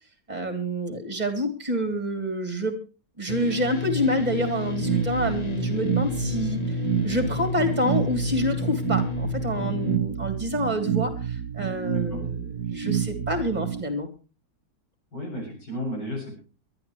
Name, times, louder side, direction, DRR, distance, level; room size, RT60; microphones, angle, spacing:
voice 1, 0.3-2.7 3.2-6.6 7.0-14.1, equal, 25° right, 8 dB, 3.3 m, -27 dB
sound 1, 3.3-10.0, left 4 dB, 30° left, 0.9 m, -31 dB
sound 2, 4.8-13.8, right 8 dB, 60° right, 1.4 m, -29 dB
voice 2, 11.9-12.2 15.1-16.3, equal, 70° left, 0 dB, 7.9 m, -33 dB
23.0 x 12.0 x 3.2 m, 0.33 s
omnidirectional pair, 1.9 m